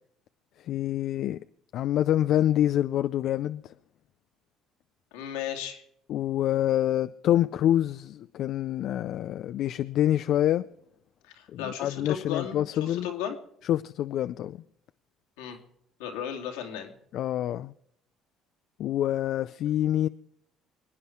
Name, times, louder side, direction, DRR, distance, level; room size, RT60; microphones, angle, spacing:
voice 1, 0.7-1.4 1.7-3.6 6.1-10.6 11.5-13.1 13.7-14.6 17.1-17.7 18.8-20.1, left 12 dB, 65° left, 0.5 m, -26 dB
voice 2, 5.1-5.8 11.2-13.4 15.4-15.6 16.0-16.9, left 9 dB, 85° left, 2.4 m, -35 dB
24.5 x 9.7 x 4.6 m
supercardioid pair, 70°, 0 cm